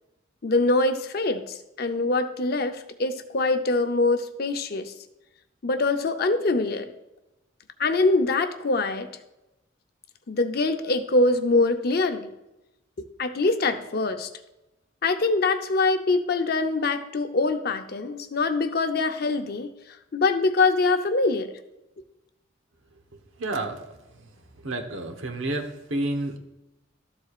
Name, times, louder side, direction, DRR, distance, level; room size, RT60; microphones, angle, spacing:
voice 1, 0.4-4.9 5.6-6.9 7.8-9.1 10.3-12.3 13.0-14.3 15.0-19.7 20.1-21.5, left 3 dB, 50° left, 8 dB, 0.6 m, -24 dB
voice 2, 23.4-23.8 24.6-26.4, right 2 dB, 80° right, 5 dB, 1.1 m, -29 dB
13.0 x 7.4 x 2.4 m, 0.94 s
head